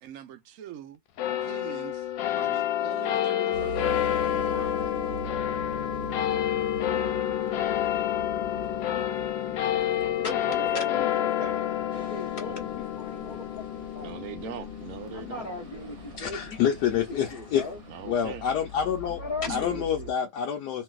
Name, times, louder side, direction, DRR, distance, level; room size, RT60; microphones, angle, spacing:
voice 1, 0.0-1.0 1.4-2.1 2.4-4.8 11.4-11.6 14.0-15.5 17.9-18.5 19.5-19.6, right 9 dB, 75° right, 0.7 m, -42 dB
sound 1, 1.2-17.9, left 11 dB, 90° left, 1.3 m, -29 dB
sound 2, 3.5-20.1, right 6 dB, 60° right, 1.1 m, -44 dB
voice 2, 10.0-14.1 15.1-17.8 19.0-20.1, left 3 dB, 35° left, 0.8 m, -38 dB
voice 3, 16.2-17.7 18.0-19.2 19.5-20.8, left 8 dB, 70° left, 1.1 m, -27 dB
3.2 x 2.5 x 2.3 m
omnidirectional pair, 2.0 m